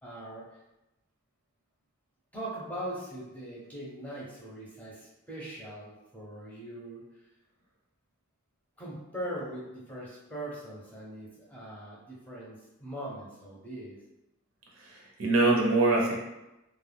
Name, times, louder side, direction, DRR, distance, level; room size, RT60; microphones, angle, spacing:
voice 1, 0.0-0.6 2.3-7.0 8.8-14.0, right 1 dB, 5° left, -7 dB, 0.6 m, -41 dB
voice 2, 14.8-16.1, right 2 dB, 70° right, -3 dB, 0.7 m, -24 dB
2.3 x 2.1 x 3.3 m, 0.95 s
head